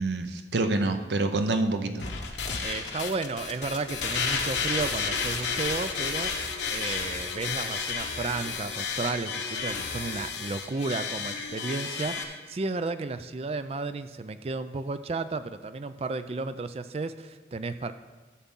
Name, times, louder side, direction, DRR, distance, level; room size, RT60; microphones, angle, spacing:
voice 1, 0.0-2.1, right 2 dB, 80° right, 8 dB, 0.7 m, -27 dB
sound 1, 2.0-12.2, left 5 dB, 90° left, 1.0 m, -32 dB
voice 2, 2.6-6.4 6.7-17.9, right 3 dB, 35° right, 11 dB, 0.3 m, -33 dB
12.5 x 7.0 x 3.7 m, 1.3 s
head